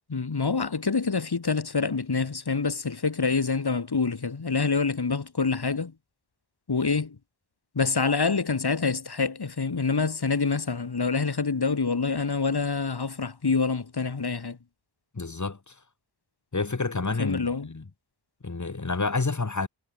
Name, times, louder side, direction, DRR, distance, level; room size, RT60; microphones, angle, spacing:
voice 1, 0.1-5.9 6.7-7.2 7.7-14.6 17.2-17.7, left 4 dB, 55° left, 4.4 m, -26 dB
voice 2, 15.1-15.8 16.5-17.9 18.4-19.7, left 3 dB, 35° left, 3.0 m, -29 dB
cardioid pair, 60°, 47 cm